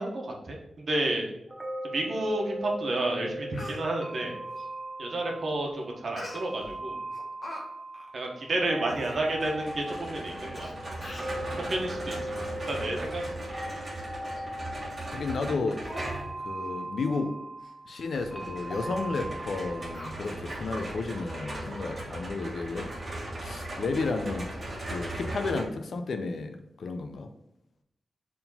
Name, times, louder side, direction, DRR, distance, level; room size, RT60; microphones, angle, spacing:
voice 1, 0.0-1.3 1.8-4.4 5.0-7.0 8.1-10.7 11.6-13.3, right 2 dB, 50° right, 0 dB, 1.3 m, -31 dB
sound 1, 1.5-20.2, right 1 dB, 10° right, 0.5 m, -39 dB
Speech, 2.8-2.9 3.3-3.8 6.2-6.7 7.1-7.6 7.9-8.1 8.7-8.8 8.9-9.1 9.9-10.0 10.6-10.7 11.0-11.4 12.1-12.3 12.7-13.4 13.7-13.8 14.3-14.4 14.9-15.1 15.4-15.5 15.8-16.2 16.5-16.7 17.1-17.3 17.6-17.7 18.1-18.3 18.7-18.9 19.9-20.6 21.0-21.1, left 1 dB, 35° left, 1.2 m, -43 dB
sound 2, 8.9-16.4 18.1-25.6, right 1 dB, 30° right, 1.5 m, -38 dB
voice 2, 15.1-15.8 16.4-17.4 17.9-22.9 23.4-24.6 24.9-27.3, left 3 dB, 60° left, 7 dB, 0.6 m, -32 dB
4.7 x 3.7 x 5.6 m, 0.81 s
wide cardioid pair, 155°, 0 cm